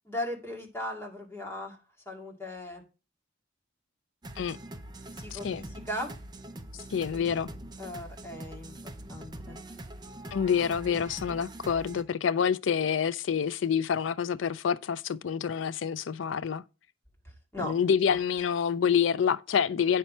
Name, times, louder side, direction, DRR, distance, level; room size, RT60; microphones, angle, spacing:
voice 1, 0.1-1.8 2.1-2.8 5.2-6.1 7.8-8.7 9.1-9.6 17.5-17.7, left 1 dB, 15° left, 2.1 m, -37 dB
sound 1, 4.2-12.0, right 1 dB, 20° right, 0.7 m, -43 dB
voice 2, 5.3-5.6 6.9-7.5 10.3-16.6 17.6-20.0, left 7 dB, 70° left, 0.4 m, -27 dB
9.4 x 5.6 x 4.3 m
head